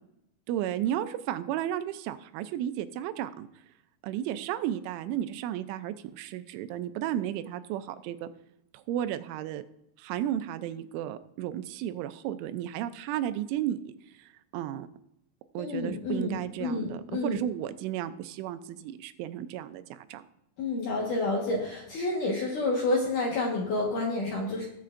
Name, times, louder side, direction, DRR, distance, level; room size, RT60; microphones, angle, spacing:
voice 1, 0.5-3.5 4.0-8.3 8.7-9.6 10.0-13.9 14.2-14.9 15.5-20.2, right 11 dB, 85° right, 11 dB, 3.0 m, -33 dB
voice 2, 15.6-17.4 20.6-24.7, left 2 dB, 65° left, -2 dB, 2.2 m, -29 dB
20.5 x 7.5 x 2.5 m, 0.80 s
omnidirectional pair, 5.5 m